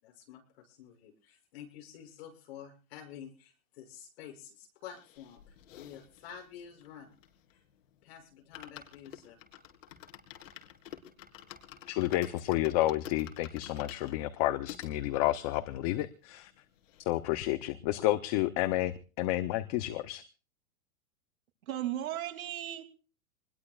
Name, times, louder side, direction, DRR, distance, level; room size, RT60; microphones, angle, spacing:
voice 1, 0.0-7.2 7.5-7.6 8.0-9.4, left 9 dB, 50° left, 3 dB, 7.3 m, -49 dB
sound 1, 4.9-7.7 8.0-8.1 8.4-14.9 15.5-15.6 15.7-15.8 16.2-17.1 17.4-17.5, left 10 dB, 70° left, 3.7 m, -50 dB
voice 2, 11.9-16.5 17.0-18.9 19.2-20.2, left 15 dB, 30° left, 12 dB, 0.7 m, -30 dB
voice 3, 21.7-22.8, right 12 dB, 85° right, 8 dB, 3.0 m, -35 dB
26.5 x 21.0 x 2.4 m, 0.37 s
supercardioid pair, 170°, 41 cm